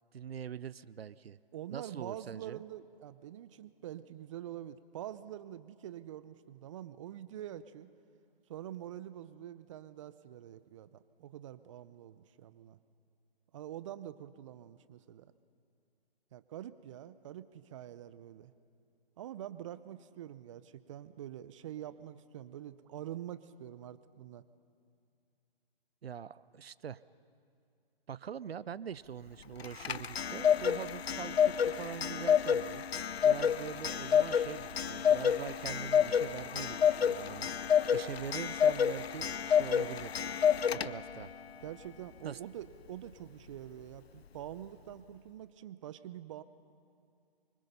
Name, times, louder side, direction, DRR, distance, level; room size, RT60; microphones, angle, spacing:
voice 1, 0.1-1.4 1.7-2.6 26.0-27.0 28.1-32.8 33.2-40.1 40.7-41.3 42.2-42.4, right 8 dB, 80° right, 19 dB, 0.6 m, -43 dB
voice 2, 1.5-7.9 8.5-12.8 13.5-15.3 16.3-18.5 19.2-24.5 41.6-46.4, right 11 dB, 30° right, 14 dB, 0.7 m, -46 dB
Clock, 29.6-41.2, left 8 dB, 85° left, 0.7 m, -29 dB
26.0 x 24.5 x 5.5 m, 2.4 s
hypercardioid pair, 145°, 30 cm